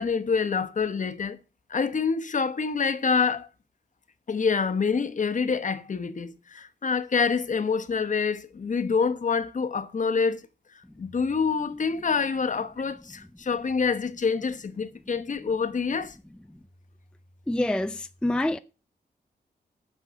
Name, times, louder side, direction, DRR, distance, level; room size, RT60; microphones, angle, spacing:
voice 1, 0.0-1.4 1.7-3.5 4.3-10.5 11.0-16.2, left 5 dB, 50° left, 1.1 m, -26 dB
voice 2, 17.5-18.6, left 1 dB, 5° left, 0.5 m, -26 dB
9.2 x 6.4 x 8.0 m
wide cardioid pair, 130°, 17 cm